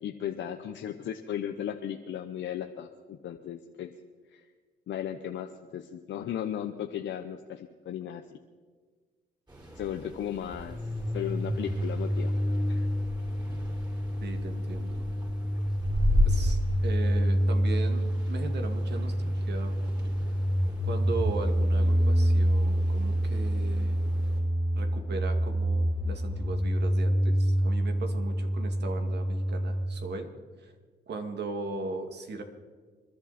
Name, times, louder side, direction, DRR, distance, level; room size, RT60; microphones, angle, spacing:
voice 1, 0.0-3.9 4.3-4.4 4.9-8.2 9.8-10.8 11.1-12.3 12.7-12.9, left 10 dB, 70° left, 6 dB, 0.9 m, -36 dB
sound 1, 9.5-24.4, left 1 dB, 20° right, 5.2 m, -35 dB
sound 2, 10.7-29.8, equal, 5° right, 1.8 m, -27 dB
voice 2, 14.2-15.1 16.2-19.8 20.8-23.9 24.7-30.3 30.6-30.7 31.1-32.4, right 3 dB, 60° right, 5 dB, 2.3 m, -38 dB
28.0 x 11.5 x 4.3 m, 1.5 s
cardioid pair, 90°, 20 cm